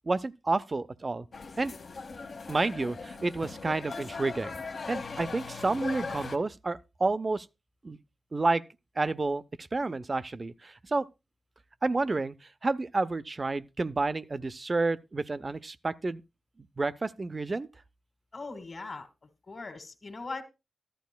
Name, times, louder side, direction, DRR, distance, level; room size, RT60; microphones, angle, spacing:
voice 1, 0.1-1.3 1.6-1.7 2.5-4.5 4.9-7.5 7.8-8.0 8.3-8.6 9.0-11.1 11.8-12.3 12.6-16.2 16.8-17.7, right 3 dB, 35° right, 0.5 m, -30 dB
sound 1, 1.3-6.4, left 4 dB, 60° left, 1.0 m, -39 dB
voice 2, 18.3-19.1 19.5-20.4, left 3 dB, 45° left, 1.8 m, -39 dB
14.0 x 11.5 x 2.2 m
cardioid pair, 75°, 0 cm